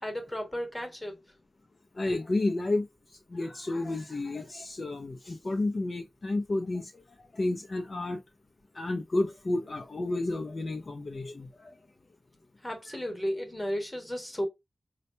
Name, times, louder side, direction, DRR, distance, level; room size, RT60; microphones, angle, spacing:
voice 1, 0.0-1.2 12.6-14.5, equal, 10° left, 1.0 m, -34 dB
voice 2, 2.0-2.9 3.3-6.9 7.3-8.2 8.7-11.7, left 2 dB, 40° left, 0.3 m, -31 dB
4.3 x 2.1 x 2.6 m
wide cardioid pair, 145°, 0 cm